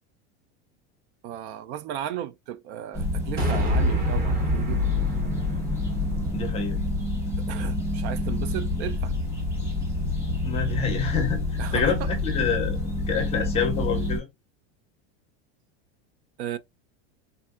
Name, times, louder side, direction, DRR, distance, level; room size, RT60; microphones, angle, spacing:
voice 1, 1.2-4.8 7.4-9.1 11.6-11.9 16.4-16.6, right 11 dB, 90° right, 0.5 m, -35 dB
sound 1, 2.9-14.2, left 2 dB, 10° right, 1.0 m, -28 dB
sound 2, 3.4-7.8, equal, 25° right, 0.9 m, -28 dB
voice 2, 6.3-6.8 10.4-11.4 11.7-12.8 13.1-14.3, left 6 dB, 20° left, 0.4 m, -27 dB
3.4 x 2.6 x 2.3 m
supercardioid pair, 165°, 32 cm